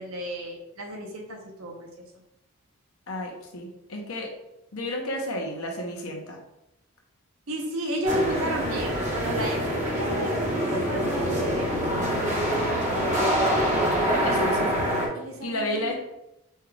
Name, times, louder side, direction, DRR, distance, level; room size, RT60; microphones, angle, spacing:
voice 1, 0.0-1.9 7.5-12.6 14.2-14.4 15.1-15.9, right 1 dB, 80° right, 1 dB, 0.9 m, -33 dB
voice 2, 3.1-4.3 4.7-6.4 14.1-14.8 15.4-15.9, left 1 dB, 85° left, 1 dB, 0.9 m, -32 dB
sound 1, 8.0-15.1, equal, 35° right, 1.1 m, -25 dB
5.5 x 2.4 x 3.3 m, 0.87 s
head